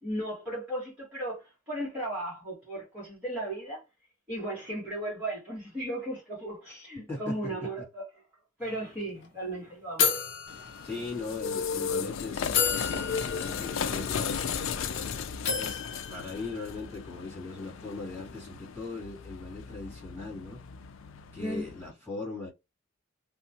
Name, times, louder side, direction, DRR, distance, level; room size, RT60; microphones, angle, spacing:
voice 1, 0.0-3.8 4.3-8.0 8.6-10.2 21.4-21.7, right 1 dB, 10° right, 1.2 m, -36 dB
sound 1, 8.6-8.8 9.0-9.2 10.0-11.4 12.0-12.1 12.5-15.0 15.5-17.1, left 6 dB, 65° left, 0.7 m, -32 dB
sound 2, 10.5-21.9, left 6 dB, 85° left, 0.4 m, -35 dB
voice 2, 10.8-15.1 15.6-15.8 16.1-20.6 21.3-22.5, left 3 dB, 10° left, 1.8 m, -39 dB
2.9 x 2.2 x 2.7 m
head